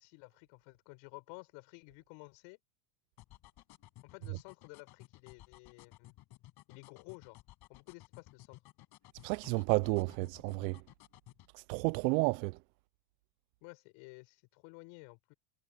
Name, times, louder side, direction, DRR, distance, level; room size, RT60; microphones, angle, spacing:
voice 1, 0.0-2.6 4.0-6.1 6.7-7.4 7.7-8.6 13.6-15.3, left 29 dB, 65° left, 7.2 m, -53 dB
sound 1, 3.2-11.5, left 16 dB, 50° left, 6.2 m, -56 dB
voice 2, 9.2-10.8 11.5-12.6, right 26 dB, 80° right, 0.6 m, -31 dB
supercardioid pair, 140°, 49 cm